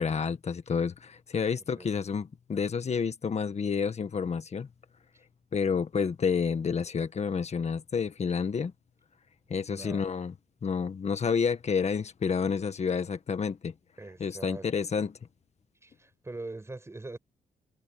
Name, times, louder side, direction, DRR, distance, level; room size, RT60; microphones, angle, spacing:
voice 1, 0.0-4.7 5.5-8.7 9.5-10.3 10.6-13.7 14.2-15.2, left 6 dB, 40° left, 1.7 m, -29 dB
voice 2, 9.6-10.1 14.0-14.7 15.8-17.2, right 2 dB, 15° right, 6.3 m, -42 dB
cardioid pair, 125°, 17 cm